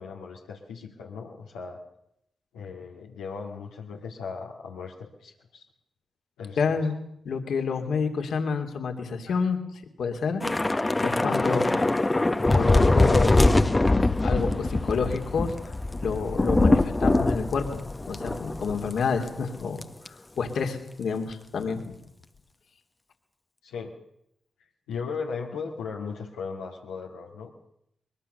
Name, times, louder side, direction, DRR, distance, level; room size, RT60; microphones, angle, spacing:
voice 1, 0.0-1.8 2.5-5.6 6.4-6.6 11.7-11.9 23.6-23.9 24.9-27.5, left 5 dB, 90° left, -4 dB, 2.2 m, -37 dB
voice 2, 6.6-7.0 7.2-9.6 10.0-10.4 11.0-11.7 12.5-13.5 14.2-15.5 16.0-17.8 18.1-21.9, left 5 dB, 70° left, 5 dB, 2.8 m, -28 dB
Thunder / Rain, 10.4-19.0 19.3-19.5 19.8-20.1, left 2 dB, 25° left, 1.2 m, -23 dB
22.5 x 21.5 x 6.8 m, 0.77 s
supercardioid pair, 40°, 0 cm